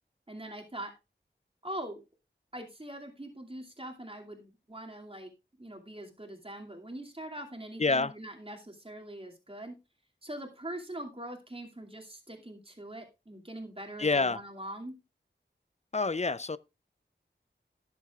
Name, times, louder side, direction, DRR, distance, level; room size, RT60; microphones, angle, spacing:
voice 1, 0.3-0.9 1.6-2.0 2.5-5.3 5.6-9.7 10.2-14.9, right 1 dB, 30° right, 2.5 m, -42 dB
voice 2, 7.8-8.1 14.0-14.4 15.9-16.6, left 3 dB, 35° left, 0.6 m, -27 dB
18.5 x 7.4 x 2.4 m
wide cardioid pair, 40°, 20 cm